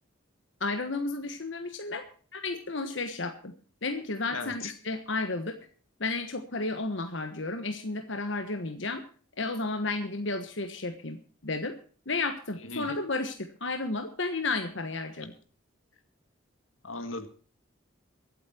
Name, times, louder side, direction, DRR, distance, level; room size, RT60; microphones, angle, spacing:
voice 1, 0.6-2.0 2.3-3.5 3.8-5.6 6.0-9.0 9.4-11.8 12.1-15.3, left 3 dB, 65° left, 6 dB, 1.4 m, -32 dB
voice 2, 4.3-4.7 12.7-13.0 16.8-17.3, left 3 dB, 90° left, 9 dB, 1.9 m, -37 dB
23.5 x 8.4 x 4.5 m, 0.41 s
head